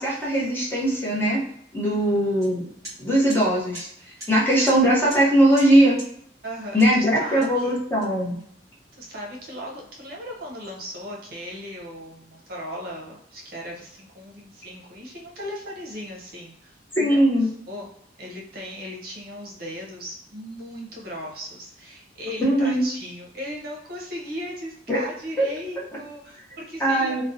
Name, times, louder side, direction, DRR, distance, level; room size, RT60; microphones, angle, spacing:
voice 1, 0.0-1.4 1.7-2.7 3.0-3.9 4.3-6.0 6.7-8.4 17.0-17.5 22.4-22.8 24.9-25.0 25.4-25.5 26.8-27.2, right 1 dB, 10° left, -5 dB, 0.7 m, -20 dB
sound 1, 2.4-2.5 2.8-3.0 3.3-3.4 3.7-3.9 4.2-4.3 4.7-4.8 5.1-5.3 5.6-5.7 6.0-6.1 6.8-7.0 7.4-8.4, right 1 dB, 20° right, 1.1 m, -39 dB
voice 2, 6.4-7.7 8.9-17.2 17.7-17.9 18.2-27.2, equal, 60° right, -1 dB, 0.6 m, -37 dB
2.5 x 2.0 x 2.6 m, 0.68 s
head